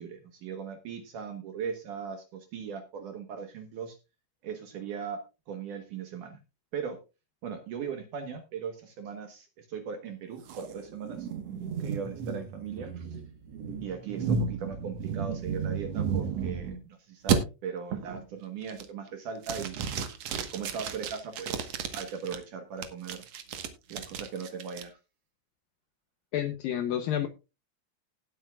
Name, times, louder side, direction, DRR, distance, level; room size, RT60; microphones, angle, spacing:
voice 1, 0.0-4.0 4.4-6.4 6.7-7.0 7.4-11.3 11.8-13.2 13.8-19.9 20.5-23.2 23.9-25.0, right 6 dB, 65° right, 7 dB, 2.1 m, -39 dB
sound 1, 10.5-16.8 17.3-17.4 17.9-18.2 18.6-19.1 19.4-22.4 22.8-24.8, right 6 dB, 85° right, 1.4 m, -33 dB
voice 2, 26.3-27.3, left 10 dB, 80° left, 10 dB, 2.0 m, -29 dB
18.5 x 8.1 x 2.3 m, 0.28 s
omnidirectional pair, 5.0 m